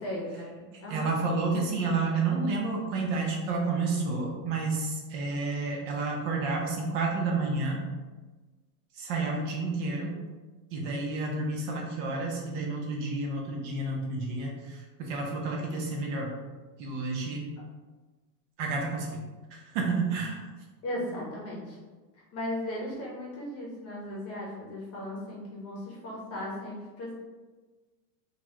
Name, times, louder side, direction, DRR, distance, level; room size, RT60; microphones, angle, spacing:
voice 1, 0.0-1.1 20.8-21.8 22.3-27.1, left 1 dB, 30° left, -3 dB, 0.9 m, -36 dB
voice 2, 0.9-7.8 9.0-10.1 10.7-16.4 16.8-17.5 18.6-19.2 19.5-20.4, right 3 dB, 50° right, 0 dB, 0.6 m, -30 dB
3.0 x 2.5 x 2.9 m, 1.3 s
supercardioid pair, 130°, 49 cm